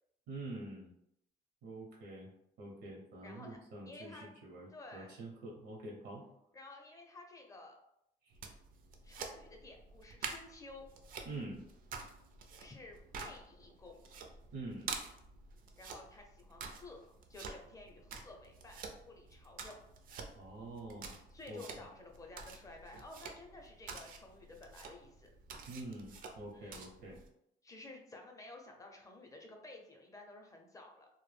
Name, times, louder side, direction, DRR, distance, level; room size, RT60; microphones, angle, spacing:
voice 1, 0.3-0.9 1.6-2.3 2.6-6.2 11.2-11.6 14.5-14.9 20.3-21.2 21.5-21.6 25.7-27.2, right 2 dB, 80° right, -1 dB, 0.7 m, -46 dB
voice 2, 3.2-3.6 3.9-4.3 4.7-5.1 6.5-7.8 9.0-10.9 12.6-14.0 15.8-18.8 19.0-19.8 21.3-25.3 26.5-26.9 27.6-31.1, left 2 dB, 20° left, 2 dB, 0.5 m, -53 dB
sound 1, 8.3-27.3, right 5 dB, 55° right, 0.4 m, -49 dB
2.2 x 2.0 x 3.2 m, 0.78 s
cardioid pair, 110°, 17 cm